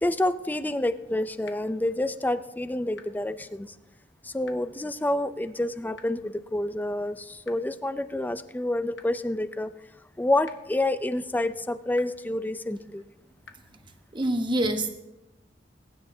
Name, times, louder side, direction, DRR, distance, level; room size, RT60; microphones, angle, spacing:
voice 1, 0.0-3.7 4.2-9.7 10.2-13.0, left 1 dB, 10° left, 13 dB, 0.4 m, -28 dB
sound 1, 1.4-1.5 3.0-3.1 4.4-4.5 6.0-6.1 7.4-7.5 9.0-9.1 10.4-10.5 12.0-12.1 13.4-13.5, left 6 dB, 75° left, 0.9 m, -46 dB
voice 2, 14.1-14.9, right 1 dB, 25° right, 5 dB, 1.2 m, -25 dB
22.0 x 10.5 x 2.8 m, 0.94 s
head